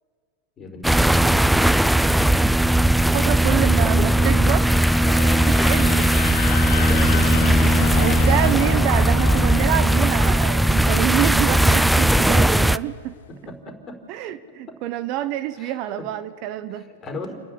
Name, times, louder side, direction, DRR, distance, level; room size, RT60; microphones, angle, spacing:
voice 1, 0.6-1.7 3.8-4.4 6.8-8.3 13.4-14.0 14.7-14.8 15.6-16.1 16.7-17.4, left 2 dB, 30° left, 3 dB, 4.3 m, -36 dB
sound 1, 0.8-12.8, right 1 dB, 5° right, 0.4 m, -18 dB
voice 2, 3.1-4.7 5.0-6.1 7.9-13.1 14.1-16.9, right 13 dB, 50° right, 13 dB, 0.9 m, -27 dB
sound 2, 3.3-12.8, left 10 dB, 70° left, 0.8 m, -32 dB
29.5 x 10.5 x 8.5 m, 2.2 s
hypercardioid pair, 95°, 0 cm